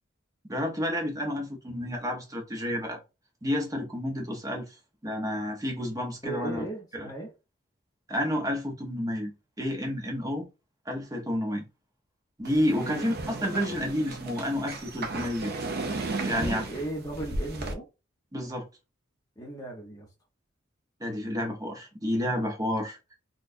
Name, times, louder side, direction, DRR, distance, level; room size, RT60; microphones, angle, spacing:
voice 1, 0.5-3.0 3.4-4.7 5.0-6.6 7.0-7.1 8.1-10.5 10.9-11.7 12.4-13.1 13.4-15.5 16.2-16.6 18.3-18.7 21.0-23.0, equal, 20° right, 0.8 m, -30 dB
voice 2, 6.2-7.3 12.8-13.0 16.3-17.9 19.4-20.1, right 2 dB, 20° left, 1.0 m, -36 dB
sound 1, 12.4-17.7, right 2 dB, 50° right, 0.6 m, -35 dB
4.0 x 2.4 x 2.6 m
head